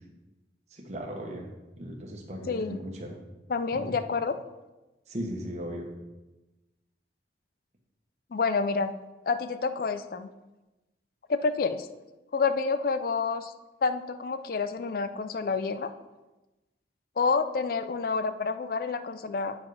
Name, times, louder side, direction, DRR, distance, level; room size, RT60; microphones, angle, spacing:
voice 1, 0.7-1.5 1.8-3.2 3.7-3.8 5.1-5.9, equal, 35° right, 0 dB, 1.0 m, -37 dB
voice 2, 2.5-2.8 3.5-4.4 8.3-8.9 9.3-10.3 11.3-11.9 12.3-13.5 13.8-15.9 17.2-19.6, left 4 dB, 50° left, 11 dB, 0.4 m, -28 dB
8.5 x 4.8 x 4.8 m, 1.1 s
head